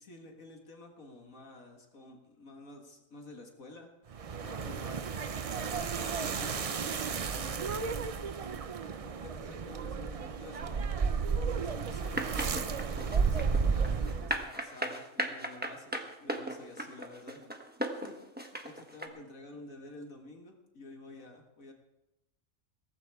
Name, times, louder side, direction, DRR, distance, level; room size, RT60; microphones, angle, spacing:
voice 1, 0.0-3.9 4.4-5.3 5.7-7.9 9.0-12.3 12.6-17.4 17.9-21.7, left 2 dB, 75° left, 2 dB, 2.0 m, -50 dB
sound 1, 4.1-14.5, right 5 dB, 60° right, 0.3 m, -33 dB
sound 2, 12.1-19.1, right 1 dB, 10° right, 1.1 m, -36 dB
17.0 x 15.0 x 3.5 m, 0.96 s
omnidirectional pair, 1.4 m